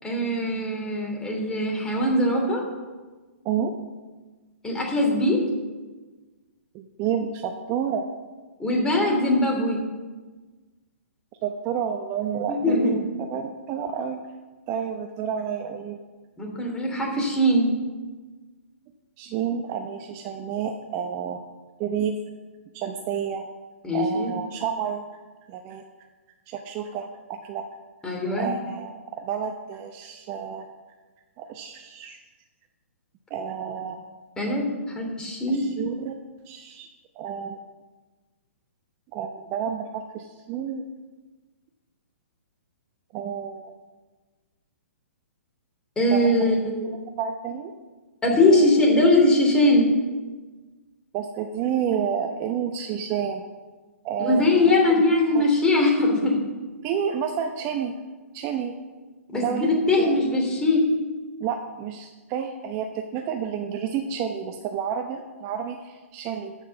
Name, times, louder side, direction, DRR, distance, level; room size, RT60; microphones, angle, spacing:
voice 1, 0.0-2.6 4.6-5.4 8.6-9.8 12.5-12.9 16.4-17.7 23.8-24.3 28.0-28.5 34.4-34.7 34.9-35.6 46.0-46.9 48.2-49.9 54.2-56.4 59.3-60.8, left 1 dB, 10° left, -1 dB, 3.0 m, -21 dB
voice 2, 6.7-8.1 11.4-14.2 14.7-16.1 19.2-21.4 21.8-22.2 22.7-23.5 23.9-25.0 25.5-25.8 26.5-27.6 28.4-30.7 31.4-32.2 33.3-34.0 35.5-36.2 36.5-36.9 37.2-37.6 39.1-40.8 43.1-43.7 46.1-46.5 47.2-47.7 48.5-48.7 51.1-53.4 54.0-54.7 55.3-55.4 56.8-57.9 58.3-58.7 59.4-59.7 60.0-60.2 61.4-66.6, right 8 dB, 30° right, 5 dB, 0.9 m, -30 dB
13.5 x 6.1 x 7.0 m, 1.3 s
hypercardioid pair, 130°, 8 cm